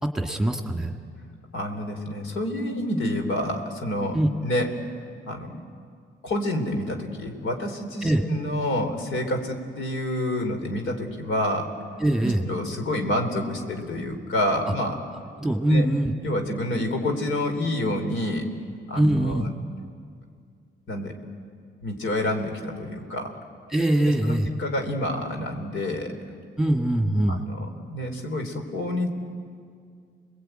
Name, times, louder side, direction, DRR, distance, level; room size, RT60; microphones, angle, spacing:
voice 1, 0.0-0.9 4.1-4.3 8.0-8.2 12.0-12.4 15.4-16.1 19.0-19.4 23.7-24.5 26.6-27.4, right 1 dB, 5° right, 3 dB, 1.9 m, -22 dB
voice 2, 1.5-4.7 5.3-5.5 6.2-11.7 12.2-15.0 15.7-15.9 16.2-18.4 18.9-19.5 20.9-21.2 21.8-23.4 24.0-26.1 27.3-29.1, left 1 dB, 75° left, 4 dB, 3.6 m, -28 dB
30.0 x 21.0 x 9.1 m, 2.2 s
cardioid pair, 100°, 21 cm